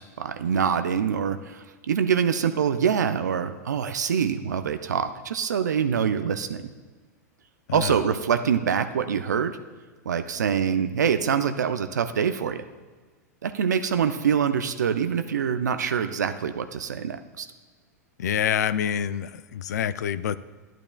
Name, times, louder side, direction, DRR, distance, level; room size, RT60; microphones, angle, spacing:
voice 1, 0.0-6.7 7.7-9.6 10.1-12.6 13.4-17.5, right 7 dB, 85° right, 9 dB, 0.5 m, -25 dB
voice 2, 18.2-20.4, left 9 dB, 75° left, 16 dB, 0.4 m, -26 dB
12.0 x 10.5 x 2.3 m, 1.4 s
hypercardioid pair, 105°, 9 cm